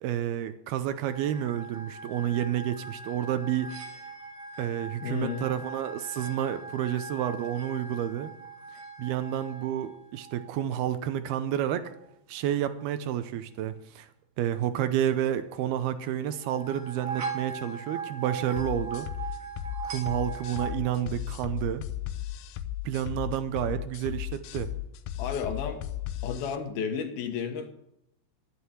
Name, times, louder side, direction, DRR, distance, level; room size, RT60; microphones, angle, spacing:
voice 1, 0.0-4.0 4.6-8.3 9.0-11.9 12.3-14.1 14.4-19.1 19.8-21.8 22.9-24.7, right 11 dB, 75° right, 11 dB, 2.6 m, -30 dB
sound 1, 1.1-10.9 16.3-20.7, right 5 dB, 55° right, 3.4 m, -40 dB
voice 2, 5.0-5.5 25.2-25.8 26.2-27.7, left 7 dB, 70° left, 7 dB, 3.0 m, -32 dB
sound 2, 18.6-26.6, left 12 dB, 85° left, 1.8 m, -35 dB
12.0 x 10.5 x 8.1 m, 0.79 s
omnidirectional pair, 4.8 m